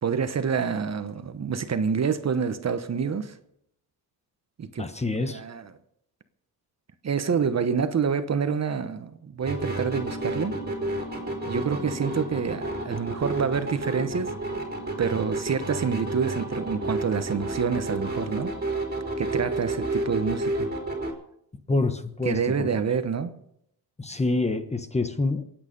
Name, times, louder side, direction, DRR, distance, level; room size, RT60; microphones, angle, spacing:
voice 1, 0.0-3.3 4.6-4.8 5.2-5.7 7.0-10.5 11.5-14.3 15.0-18.5 19.2-20.7 22.2-23.3, right 6 dB, 40° right, 10 dB, 1.1 m, -27 dB
voice 2, 4.8-5.4 21.7-22.7 24.0-25.4, left 2 dB, 15° left, 9 dB, 1.2 m, -27 dB
sound 1, 9.4-21.1, right 2 dB, 25° right, 4.2 m, -31 dB
sound 2, 9.7-18.9, left 6 dB, 70° left, 1.8 m, -45 dB
23.0 x 9.2 x 5.3 m, 0.76 s
cardioid pair, 100°, 40 cm